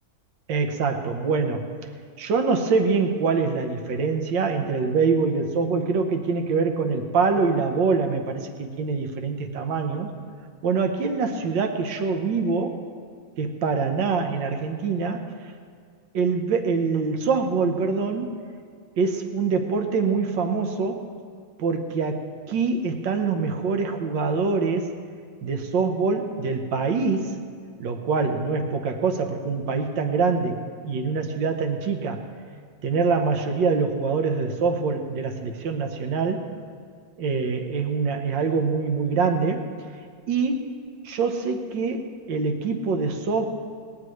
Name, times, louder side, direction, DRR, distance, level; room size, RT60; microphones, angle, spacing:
voice 1, 0.5-1.7 2.2-10.1 10.6-12.8 13.4-15.2 16.1-18.3 19.0-21.0 21.6-24.9 25.4-27.4 27.8-30.6 30.8-32.2 32.8-36.5 37.2-39.7 40.3-40.6 41.0-43.5, right 4 dB, 70° right, 5 dB, 1.8 m, -24 dB
20.0 x 17.5 x 3.2 m, 2.1 s
omnidirectional pair, 2.1 m